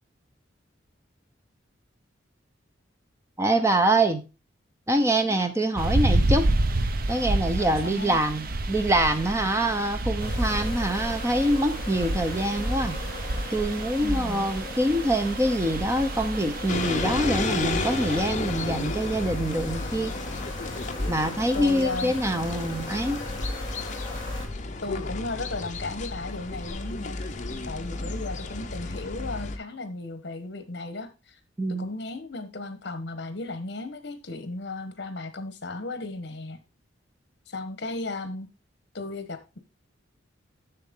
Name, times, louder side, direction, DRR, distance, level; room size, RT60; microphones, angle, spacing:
voice 1, 3.4-4.2 4.9-6.4 7.1-13.0 13.5-20.1 21.1-23.2 31.6-31.8, right 1 dB, 15° right, 8 dB, 0.7 m, -25 dB
sound 1, 5.8-18.3, right 2 dB, 50° right, 0.6 m, -29 dB
voice 2, 7.6-8.2 14.0-14.5 21.5-22.1 24.8-27.2 27.7-31.4 31.7-36.6 37.5-38.5 38.9-39.6, left 2 dB, 60° left, 9 dB, 1.1 m, -35 dB
sound 2, 10.2-24.5, left 1 dB, 20° left, 3.8 m, -36 dB
sound 3, 16.7-29.6, left 3 dB, 40° left, 0.7 m, -33 dB
7.4 x 6.9 x 3.7 m, 0.29 s
head